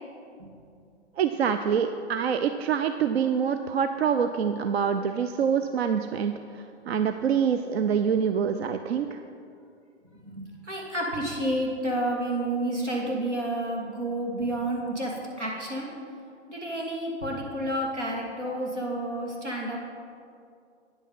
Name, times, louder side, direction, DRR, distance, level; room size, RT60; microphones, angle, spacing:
voice 1, 1.2-6.3 6.9-9.2, right 7 dB, 65° right, 9 dB, 0.5 m, -25 dB
voice 2, 10.2-15.9 16.5-19.8, right 1 dB, 90° right, -2 dB, 2.7 m, -30 dB
9.4 x 8.3 x 5.4 m, 2.4 s
figure-of-eight pair, 120°, 34 cm